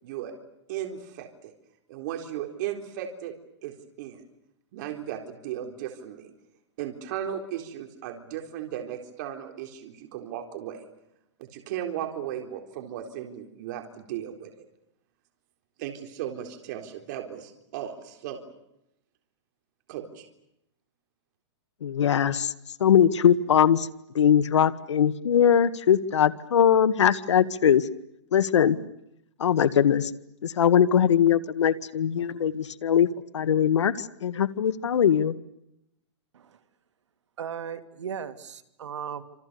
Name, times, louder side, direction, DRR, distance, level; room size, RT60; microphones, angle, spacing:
voice 1, 0.0-0.3 0.7-1.5 1.9-3.3 3.6-4.2 4.7-6.3 6.8-10.8 11.4-14.6 15.8-18.4 19.9-20.3, right 10 dB, 40° right, 4 dB, 4.0 m, -36 dB
voice 2, 21.8-22.5 22.8-23.9 24.2-27.9 28.3-28.8 29.4-30.1 30.4-33.1 33.3-35.3, left 8 dB, 85° left, 13 dB, 1.7 m, -21 dB
voice 3, 37.4-39.2, right 8 dB, 85° right, 8 dB, 2.7 m, -36 dB
28.0 x 27.5 x 6.9 m, 0.80 s
hypercardioid pair, 160°, 15 cm